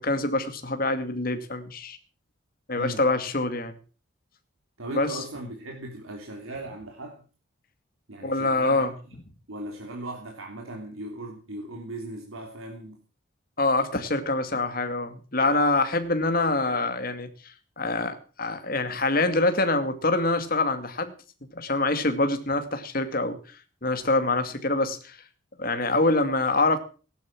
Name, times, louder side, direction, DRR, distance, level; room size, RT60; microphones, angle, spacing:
voice 1, 0.0-2.0 2.7-3.7 4.9-5.2 8.2-8.9 13.6-17.3 17.8-21.1 21.5-23.4 23.8-25.2 25.6-26.8, left 2 dB, 45° left, 8 dB, 2.3 m, -25 dB
voice 2, 4.8-7.2 8.1-8.9 9.5-13.0 14.5-14.6, right 1 dB, 85° right, 1 dB, 3.2 m, -38 dB
17.5 x 11.5 x 6.1 m, 0.38 s
head